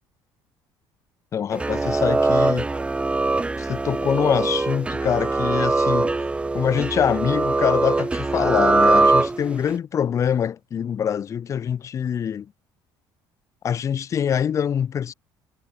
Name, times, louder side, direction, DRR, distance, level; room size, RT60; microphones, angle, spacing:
voice 1, 1.3-2.7 3.6-6.1 6.5-12.5 13.6-15.1, left 8 dB, 35° left, 1.0 m, -24 dB
sound 1, 1.5-9.7, right 3 dB, 15° right, 1.6 m, -22 dB
cardioid pair, 130°, 9 cm